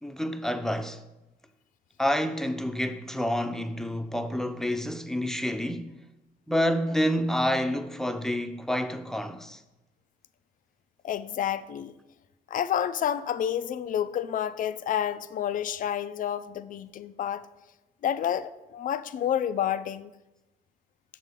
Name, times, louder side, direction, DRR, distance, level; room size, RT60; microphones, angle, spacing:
voice 1, 0.0-1.0 2.0-6.0 6.5-9.6, equal, ahead, 0.6 m, -28 dB
voice 2, 11.0-11.9 12.5-17.5 18.0-20.1, left 9 dB, 45° left, 0.4 m, -29 dB
7.1 x 3.9 x 6.6 m
hypercardioid pair, 50°, 19 cm